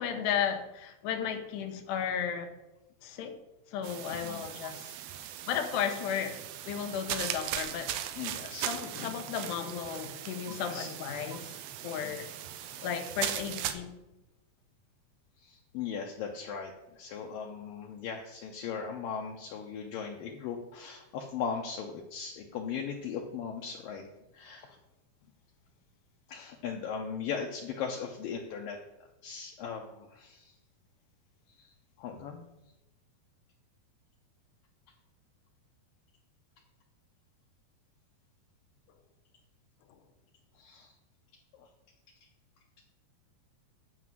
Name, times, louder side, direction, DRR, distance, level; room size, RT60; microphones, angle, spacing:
voice 1, 0.0-2.5 3.0-3.4 3.7-5.0 5.5-6.4 6.6-8.3 8.6-11.6 11.8-12.3 12.8-13.9, left 8 dB, 90° left, 3.1 m, -34 dB
sound 1, 3.8-13.7, right 11 dB, 80° right, 2.3 m, -39 dB
voice 2, 4.1-4.4 8.2-8.7 10.5-10.9 12.0-12.1 12.6-12.8 15.4-24.1 24.3-24.8 26.3-28.8 29.2-30.5 31.6-31.7 32.0-32.4 40.6-40.9 41.5-41.7, left 6 dB, 75° left, 2.2 m, -38 dB
9.7 x 5.2 x 7.7 m
omnidirectional pair, 4.7 m